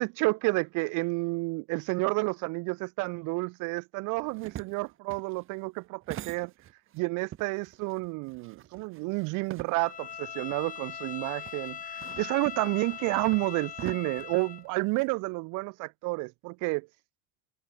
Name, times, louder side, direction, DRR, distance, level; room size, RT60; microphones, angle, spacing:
voice 1, 0.0-6.5 6.9-16.8, right 26 dB, 70° right, 2.9 m, -30 dB
sound 1, 4.2-7.0 7.3-10.2 10.5-10.6 11.4-15.1, right 12 dB, 40° right, 6.8 m, -45 dB
Bowed string instrument, 9.8-14.7, left 8 dB, 25° left, 2.8 m, -40 dB
cardioid pair, 165°, 32 cm